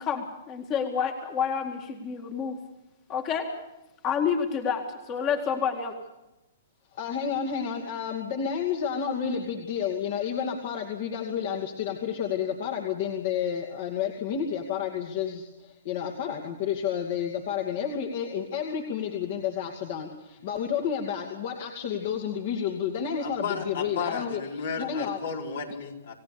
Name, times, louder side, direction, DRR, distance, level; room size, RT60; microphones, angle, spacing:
voice 1, 0.0-2.6 3.1-3.5 4.0-5.9, left 7 dB, 30° left, 3 dB, 2.1 m, -29 dB
voice 2, 6.9-24.4 24.8-25.2, left 8 dB, 55° left, 2 dB, 2.5 m, -30 dB
voice 3, 23.2-26.1, left 5 dB, 75° left, 0 dB, 4.9 m, -33 dB
28.5 x 16.5 x 7.0 m, 0.97 s
hypercardioid pair, 125°, 0 cm